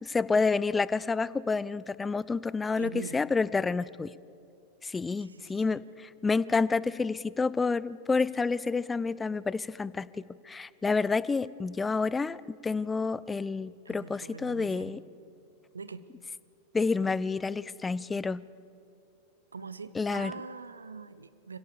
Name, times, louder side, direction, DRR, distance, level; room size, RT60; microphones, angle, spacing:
voice 1, 0.0-4.1 4.8-15.0 16.7-18.4 20.0-20.3, left 4 dB, 15° left, 19 dB, 0.5 m, -29 dB
voice 2, 2.8-3.2 5.2-5.8 13.8-15.0 15.7-16.0 19.5-21.6, right 5 dB, 75° right, 15 dB, 0.8 m, -43 dB
25.0 x 17.0 x 7.0 m, 2.5 s
figure-of-eight pair, 90°, 0 cm